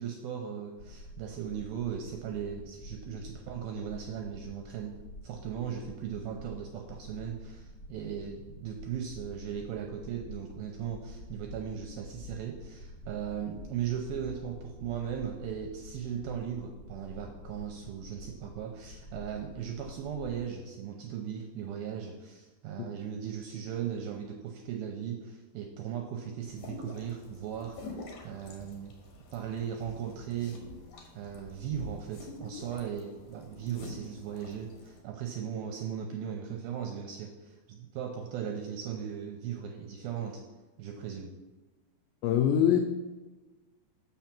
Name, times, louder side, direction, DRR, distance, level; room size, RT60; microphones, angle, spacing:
voice 1, 0.0-4.9 5.2-28.9 29.3-30.6 31.1-40.4 40.8-41.3, right 8 dB, 80° right, 2 dB, 2.2 m, -38 dB
sound 1, 0.8-20.4, left 1 dB, 35° left, 2.5 m, -49 dB
sound 2, 11.4-16.3, left 2 dB, 20° left, 1.0 m, -54 dB
sound 3, 26.5-35.0, left 2 dB, 60° left, 2.2 m, -47 dB
voice 2, 42.2-42.8, left 9 dB, 90° left, 5 dB, 2.1 m, -23 dB
7.2 x 5.7 x 5.9 m, 1.2 s
omnidirectional pair, 4.9 m